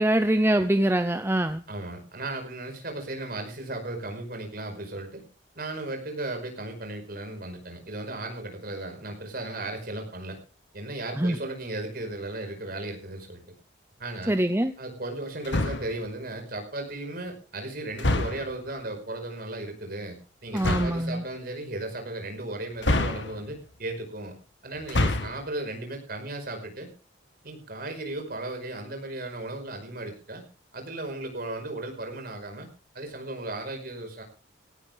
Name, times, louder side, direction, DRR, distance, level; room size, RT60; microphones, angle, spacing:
voice 1, 0.0-1.6 11.2-11.4 14.3-14.7 20.5-21.2, right 1 dB, 10° right, 9 dB, 0.7 m, -23 dB
voice 2, 1.7-5.2 5.6-10.4 10.7-13.4 14.0-14.4 14.8-24.3 24.6-26.9 27.4-30.4 30.7-32.7 32.9-34.2, right 2 dB, 50° right, 4 dB, 5.2 m, -36 dB
sound 1, 15.4-16.0 18.0-18.6 20.6-21.1 22.8-23.6 24.8-25.5, left 2 dB, 60° left, 1.8 m, -27 dB
17.5 x 16.5 x 3.6 m, 0.35 s
head